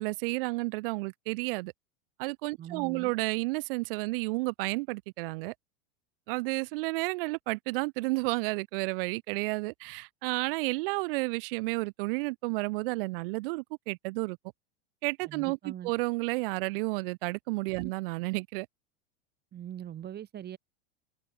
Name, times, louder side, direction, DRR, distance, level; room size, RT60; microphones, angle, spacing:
voice 1, 0.0-1.7 2.2-5.5 6.3-14.4 15.0-18.7, right 25 dB, 60° right, 0.5 m, -31 dB
voice 2, 2.6-3.1 15.3-15.9 17.8-17.9 19.5-20.6, right 10 dB, 30° right, 2.7 m, -41 dB
hypercardioid pair, 110°, 32 cm